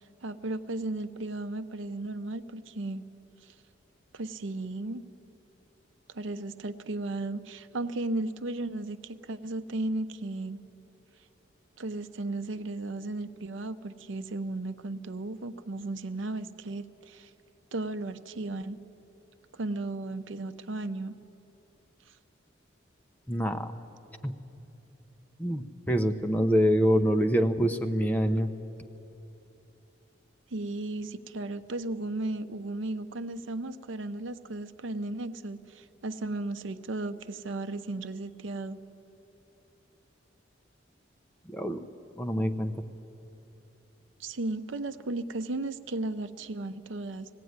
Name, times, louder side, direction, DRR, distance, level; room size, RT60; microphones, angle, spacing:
voice 1, 0.2-3.0 4.1-5.0 6.1-10.6 11.8-17.3 17.7-18.8 19.5-21.2 30.5-38.8 44.2-47.3, right 2 dB, 75° right, 11 dB, 0.7 m, -35 dB
voice 2, 23.3-23.7 24.2-24.3 25.4-28.5 41.5-41.8 42.2-42.7, equal, 10° left, 5 dB, 0.7 m, -25 dB
19.5 x 15.5 x 9.5 m, 3.0 s
head